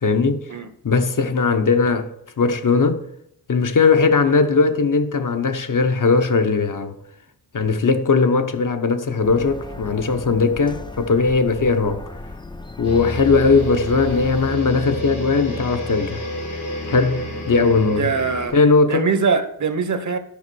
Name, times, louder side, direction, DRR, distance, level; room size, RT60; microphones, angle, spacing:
voice 1, 0.0-0.4 0.8-2.1 2.4-3.0 3.5-7.0 7.5-12.0 12.8-16.2 16.8-18.1 18.5-19.1, left 4 dB, 55° left, 0.9 m, -18 dB
sound 1, 9.2-14.5, left 2 dB, 15° left, 0.4 m, -36 dB
sound 2, 12.8-18.5, equal, 90° left, 2.9 m, -29 dB
voice 2, 17.9-18.6 18.9-20.2, right 5 dB, 50° right, 0.8 m, -22 dB
10.5 x 5.3 x 6.2 m
wide cardioid pair, 145°, 37 cm